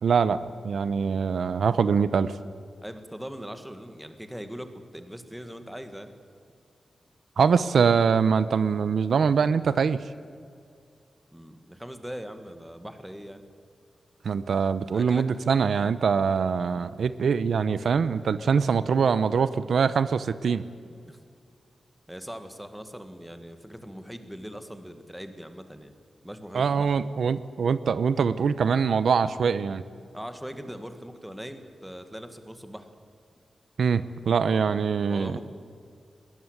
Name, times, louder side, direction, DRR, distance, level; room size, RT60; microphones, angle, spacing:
voice 1, 0.0-2.3 7.4-10.0 14.2-20.6 26.5-29.8 33.8-35.4, right 6 dB, 80° right, 14 dB, 0.7 m, -23 dB
voice 2, 2.8-6.1 11.3-13.4 14.9-15.2 20.9-21.2 22.1-25.9 26.2-27.0 30.1-32.9 34.4-34.6 35.1-35.4, equal, 5° right, 8 dB, 1.8 m, -40 dB
21.5 x 18.5 x 8.1 m, 2.3 s
wide cardioid pair, 130°, 0 cm